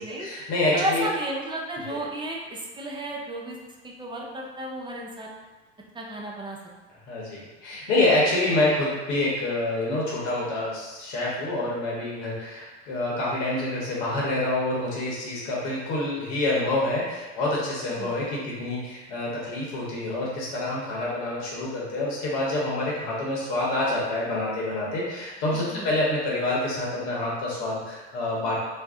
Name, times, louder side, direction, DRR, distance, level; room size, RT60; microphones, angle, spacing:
voice 1, 0.2-1.1 1.9-2.0 7.1-28.6, left 2 dB, 80° left, -5 dB, 0.9 m, -27 dB
voice 2, 0.7-3.6 3.8-5.3 5.9-6.6 17.9-18.2 25.5-25.9, right 1 dB, 15° right, -1 dB, 0.5 m, -33 dB
2.4 x 2.1 x 3.5 m, 1.2 s
supercardioid pair, 85°, 35 cm